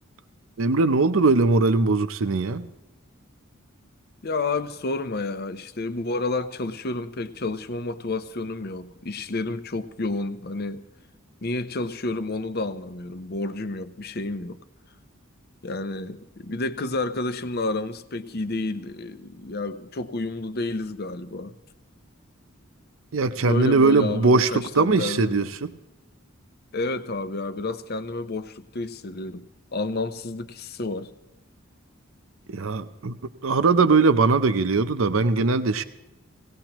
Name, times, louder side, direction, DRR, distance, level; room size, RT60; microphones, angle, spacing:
voice 1, 0.6-2.7 23.1-25.7 32.5-33.2 33.4-35.8, right 3 dB, 75° right, 0.7 m, -20 dB
voice 2, 4.2-10.9 11.4-14.6 15.6-21.5 23.4-25.5 26.7-29.5 29.7-31.1, left 2 dB, 50° left, 0.7 m, -30 dB
18.0 x 18.0 x 3.0 m
head